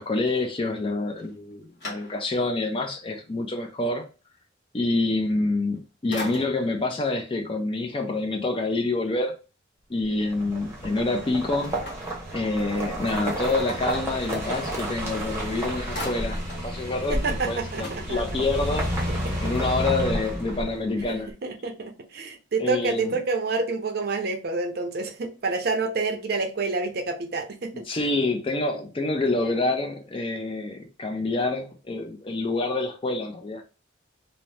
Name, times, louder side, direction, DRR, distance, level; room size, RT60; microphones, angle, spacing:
voice 1, 0.0-4.1 4.7-9.3 9.9-11.8 12.3-16.4 16.6-18.9 19.4-21.3 22.6-23.1 27.7-33.6, left 2 dB, 30° left, 0.4 m, -27 dB
sound 1, 1.2-2.6 3.1-3.2 5.5-5.8 6.1-6.9 11.6-12.9 15.0-15.1 15.4-16.7 17.1-17.2 17.4-18.7, left 1 dB, 60° left, 1.3 m, -40 dB
sound 2, 10.2-21.0, right 1 dB, 15° right, 0.8 m, -31 dB
voice 2, 17.1-18.2 19.1-19.6 21.1-27.9, right 3 dB, 55° right, 0.5 m, -28 dB
2.7 x 2.0 x 3.1 m
head